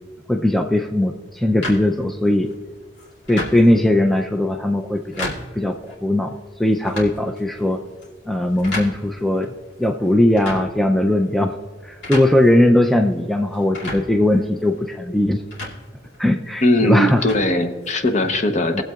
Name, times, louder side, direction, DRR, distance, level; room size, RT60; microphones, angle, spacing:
voice 1, 0.3-2.5 3.3-5.7 6.0-7.8 8.3-9.5 9.8-11.6 11.8-15.4 16.2-17.2 18.7-18.8, left 1 dB, ahead, 4 dB, 0.4 m, -19 dB
sound 1, 1.6-18.3, left 1 dB, 80° left, 2.3 m, -36 dB
voice 2, 16.6-18.8, left 1 dB, 40° left, 7 dB, 0.8 m, -19 dB
19.5 x 7.6 x 2.3 m, 1.5 s
head